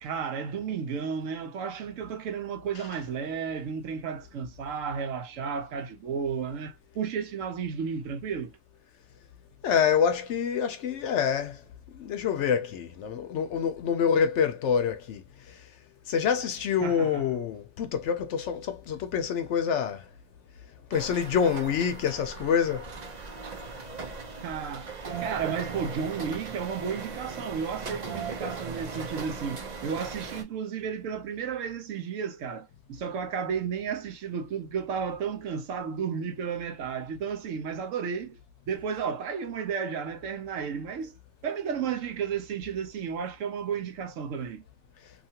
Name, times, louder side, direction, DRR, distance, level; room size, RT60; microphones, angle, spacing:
voice 1, 0.0-8.5 16.8-17.3 24.3-24.9 25.2-38.4 38.7-41.2 41.4-44.6, right 6 dB, 75° right, 1.0 m, -33 dB
voice 2, 9.6-11.6 11.9-15.2 16.1-20.0 20.9-22.8, left 7 dB, 70° left, 0.8 m, -26 dB
sound 1, 20.9-30.4, right 5 dB, 45° right, 0.6 m, -38 dB
2.8 x 2.4 x 2.7 m
omnidirectional pair, 1.3 m